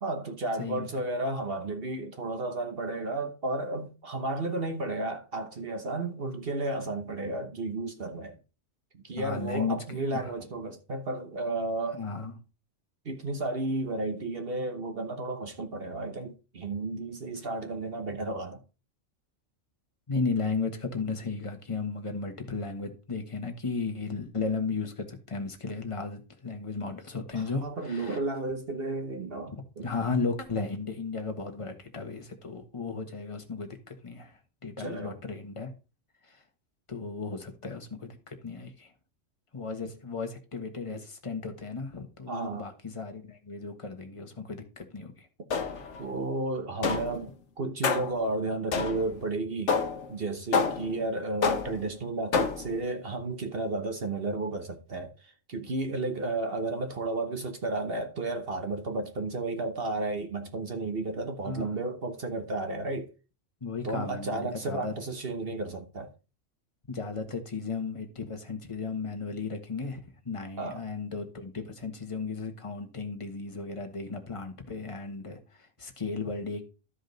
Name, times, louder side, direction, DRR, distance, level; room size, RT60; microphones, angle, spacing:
voice 1, 0.0-8.4 9.0-12.0 13.0-18.6 27.3-29.9 34.8-35.1 42.3-42.7 46.0-49.8 50.1-63.1 63.8-66.1 70.6-70.8, right 2 dB, 50° right, 1.2 m, -33 dB
voice 2, 0.6-1.0 9.2-10.3 11.9-12.3 20.1-28.2 29.8-35.7 36.2-36.4 36.9-38.9 39.5-45.3 61.4-61.8 63.6-64.9 65.5-65.7 66.9-76.6, left 4 dB, 25° left, 1.4 m, -35 dB
sound 1, 45.5-46.0 46.8-47.3 47.8-48.2 48.7-49.2 49.7-50.1 50.5-51.0 51.4-51.9 52.3-52.8, left 5 dB, 70° left, 1.4 m, -28 dB
12.5 x 5.1 x 4.0 m
omnidirectional pair, 1.3 m